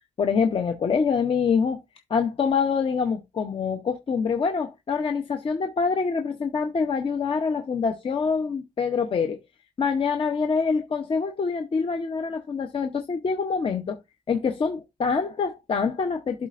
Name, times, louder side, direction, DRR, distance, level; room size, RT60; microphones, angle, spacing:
voice 1, 0.2-1.8 2.1-9.4 9.8-14.0 14.3-16.5, left 5 dB, 35° left, 0.7 m, -25 dB
12.0 x 4.2 x 2.5 m
cardioid pair, 140°, 15 cm